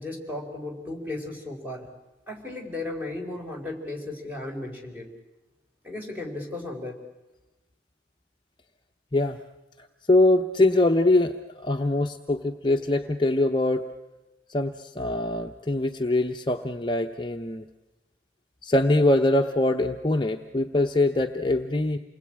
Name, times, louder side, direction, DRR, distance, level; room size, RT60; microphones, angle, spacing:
voice 1, 0.0-1.9 2.3-5.1 5.8-7.0, left 2 dB, 10° right, 0 dB, 4.6 m, -35 dB
voice 2, 10.1-13.9 14.5-17.6 18.6-22.0, left 2 dB, 25° left, 4 dB, 0.8 m, -23 dB
28.5 x 20.5 x 8.8 m, 1.1 s
head